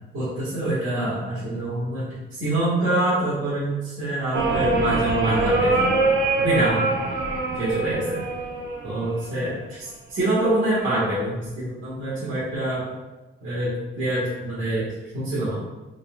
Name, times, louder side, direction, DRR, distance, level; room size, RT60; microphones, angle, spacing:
voice 1, 0.1-2.0 2.3-5.8 6.4-7.1 7.5-8.2 8.8-12.8 13.4-15.5, right 1 dB, 85° right, -10 dB, 1.2 m, -25 dB
sound 1, 4.3-9.4 10.5-11.0, right 3 dB, 60° right, 0.6 m, -24 dB
3.8 x 2.6 x 2.3 m, 1.1 s
wide cardioid pair, 150°, 21 cm